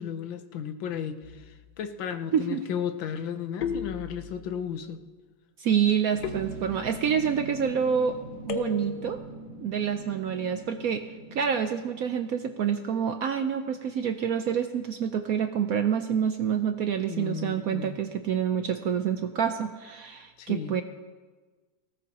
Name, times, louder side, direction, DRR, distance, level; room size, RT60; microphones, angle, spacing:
voice 1, 0.0-5.0 17.1-18.0 20.4-20.8, left 8 dB, 85° left, 9 dB, 1.6 m, -34 dB
sound 1, 1.2-1.8 3.6-4.5 6.2-7.2 8.5-9.2, left 5 dB, 65° left, 1.4 m, -35 dB
voice 2, 2.3-2.6 5.6-8.2 8.4-9.2 9.6-11.0 11.3-20.8, right 7 dB, 70° right, 8 dB, 0.9 m, -27 dB
sound 2, 6.1-14.6 14.9-15.0, right 3 dB, 90° right, 2.4 m, -44 dB
19.0 x 17.5 x 2.9 m, 1.3 s
omnidirectional pair, 2.0 m